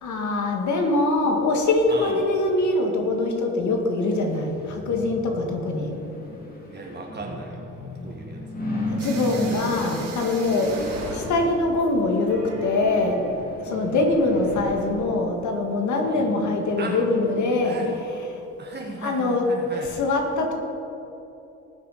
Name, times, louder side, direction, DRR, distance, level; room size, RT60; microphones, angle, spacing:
voice 1, 0.0-6.0 8.9-13.2 13.6-18.3 19.0-20.5, left 2 dB, 70° left, 2 dB, 2.0 m, -23 dB
voice 2, 1.9-2.2 6.7-7.6 8.0-8.4 10.6-10.8 13.6-14.1 16.0-16.3 16.8-17.0 17.6-17.9 18.6-19.9, right 3 dB, 35° right, -1 dB, 1.8 m, -36 dB
sound 1, 4.1-18.0 18.4-18.5, left 2 dB, 30° left, 2.6 m, -36 dB
sound 2, 9.0-14.5, right 3 dB, 90° right, 3.3 m, -39 dB
19.0 x 6.6 x 5.1 m, 3.0 s
cardioid pair, 90°, 30 cm